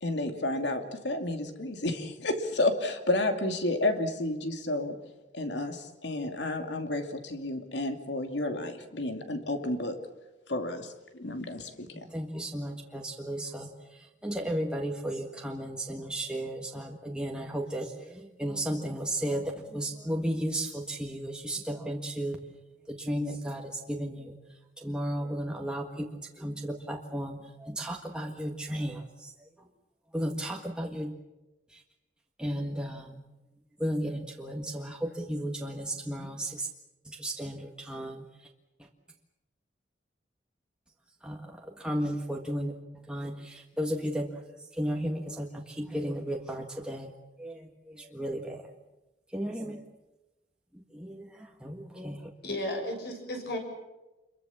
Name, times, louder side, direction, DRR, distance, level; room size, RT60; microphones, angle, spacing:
voice 1, 0.0-5.0 5.3-10.0 10.5-11.9, left 2 dB, 75° left, 6 dB, 2.6 m, -31 dB
voice 2, 11.9-22.4 22.9-24.4 24.8-29.7 30.1-31.2 31.7-31.8 32.4-33.3 33.8-36.7 37.0-38.5 38.8-38.9 41.2-47.1 47.4-48.7 49.3-49.8 50.7-52.3, equal, 5° right, 0 dB, 1.6 m, -34 dB
voice 3, 52.4-53.6, left 1 dB, 60° left, 4 dB, 6.5 m, -33 dB
27.0 x 22.5 x 7.2 m, 1.0 s
head